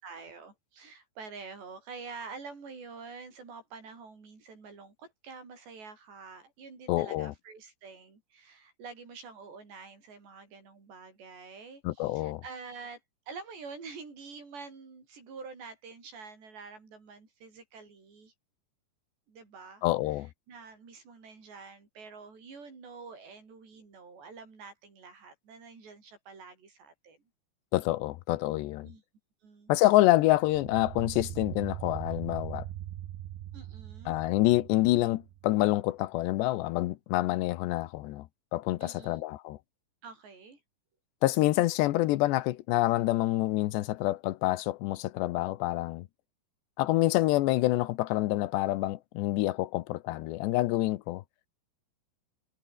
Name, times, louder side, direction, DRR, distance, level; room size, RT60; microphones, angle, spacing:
voice 1, 0.0-13.0 13.3-18.3 19.3-20.2 20.5-27.2 28.8-29.0 29.4-29.7 33.5-34.2 38.8-39.2 40.0-40.6, right 4 dB, 90° right, 9.6 m, -47 dB
voice 2, 6.9-7.3 11.8-12.4 19.8-20.3 27.7-28.9 29.7-32.7 34.1-38.3 38.5-39.6 41.2-46.1 46.8-51.2, left 17 dB, 90° left, 3.2 m, -27 dB
sound 1, 30.4-35.7, right 13 dB, 70° right, 3.3 m, -41 dB
omnidirectional pair, 4.8 m